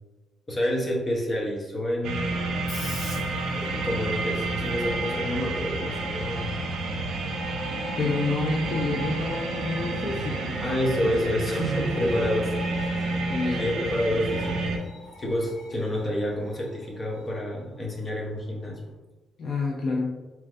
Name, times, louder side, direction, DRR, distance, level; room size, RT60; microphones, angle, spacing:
voice 1, 0.5-2.5 3.5-6.5 10.6-12.8 13.6-14.7 15.2-18.8, equal, 25° left, -2 dB, 0.8 m, -28 dB
sound 1, 2.0-14.8, right 2 dB, 80° right, 0.6 m, -30 dB
Screech, 2.3-18.9, left 1 dB, 85° left, 1.3 m, -44 dB
voice 2, 8.0-10.6 13.3-13.6 19.4-20.1, left 3 dB, 45° left, -1 dB, 0.4 m, -28 dB
4.2 x 3.3 x 2.5 m, 1.2 s
cardioid pair, 160°, 0 cm